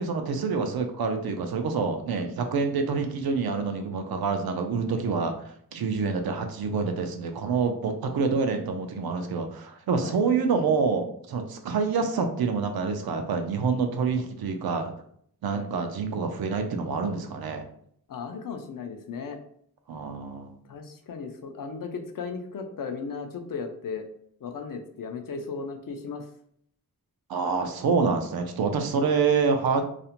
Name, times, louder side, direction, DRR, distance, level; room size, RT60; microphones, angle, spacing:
voice 1, 0.0-5.3 5.7-14.9 15.4-17.6 19.9-20.6 27.3-29.8, right 5 dB, 80° right, 6 dB, 0.5 m, -27 dB
voice 2, 18.1-19.4 20.7-24.1 24.4-26.3, left 5 dB, 65° left, 5 dB, 0.5 m, -36 dB
2.4 x 2.1 x 2.8 m, 0.65 s
wide cardioid pair, 110°, 36 cm